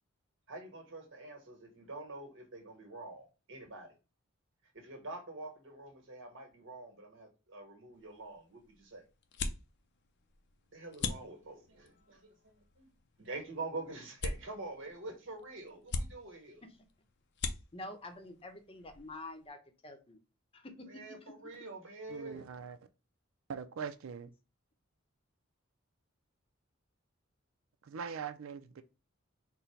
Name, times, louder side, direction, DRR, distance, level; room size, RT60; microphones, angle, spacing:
voice 1, 0.5-4.0 4.7-9.0 10.7-12.3 12.8-12.9 13.2-16.6 20.9-22.4, right 2 dB, 65° right, 1.3 m, -46 dB
sound 1, 7.9-19.5, left 4 dB, 60° left, 0.6 m, -44 dB
voice 2, 17.7-20.2 20.5-20.9 21.3-21.5, left 2 dB, 30° left, 0.8 m, -47 dB
voice 3, 22.1-22.8 23.5-24.3 27.9-28.8, right 6 dB, 80° right, 0.4 m, -41 dB
4.1 x 2.1 x 4.4 m
head